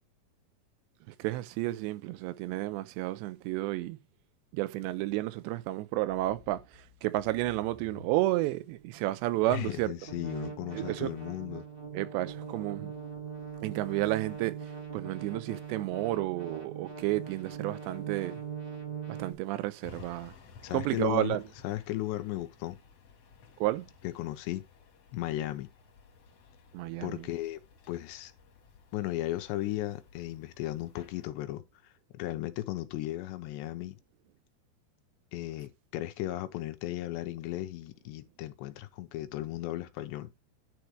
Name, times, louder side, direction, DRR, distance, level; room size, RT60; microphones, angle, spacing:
voice 1, 1.1-4.0 4.5-9.9 10.7-11.1 11.9-13.0 13.6-14.6 14.9-18.4 19.1-20.3 20.7-21.4 23.6-23.9 26.7-27.3, right 17 dB, 90° right, 2.9 m, -31 dB
sound 1, 6.1-19.3, right 6 dB, 25° right, 1.3 m, -42 dB
voice 2, 9.5-11.7 20.6-21.4 21.6-22.8 24.0-24.6 25.1-25.7 27.0-27.6 27.9-28.3 28.9-31.6 32.1-34.0 35.3-40.3, left 15 dB, 85° left, 3.1 m, -35 dB
sound 2, 19.8-31.3, left 5 dB, 50° left, 1.9 m, -56 dB
10.5 x 4.5 x 4.8 m
omnidirectional pair, 5.0 m